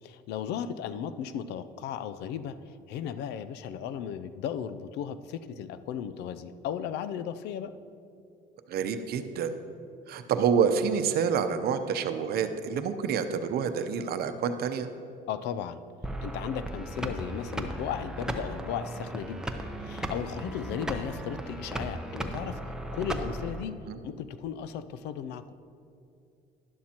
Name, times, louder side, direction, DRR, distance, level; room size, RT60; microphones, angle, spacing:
voice 1, 0.0-7.8 15.3-15.8 16.2-19.4 19.8-23.8 24.0-25.5, left 8 dB, 85° left, 13 dB, 0.5 m, -36 dB
voice 2, 8.7-9.5 10.1-14.9 23.9-24.0, right 7 dB, 65° right, 8 dB, 0.7 m, -28 dB
sound 1, 16.0-23.6, right 1 dB, 5° right, 0.8 m, -36 dB
11.5 x 11.0 x 2.9 m, 2.6 s
cardioid pair, 110°, 17 cm